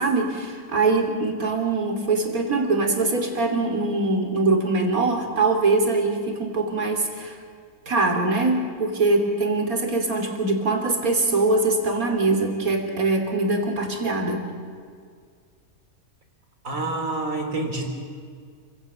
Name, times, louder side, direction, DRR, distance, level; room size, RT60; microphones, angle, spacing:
voice 1, 0.0-7.4 7.9-14.5, right 3 dB, 85° right, 3 dB, 3.6 m, -23 dB
voice 2, 16.6-17.9, right 2 dB, 65° right, 4 dB, 3.8 m, -27 dB
28.5 x 16.5 x 8.5 m, 2.1 s
omnidirectional pair, 1.5 m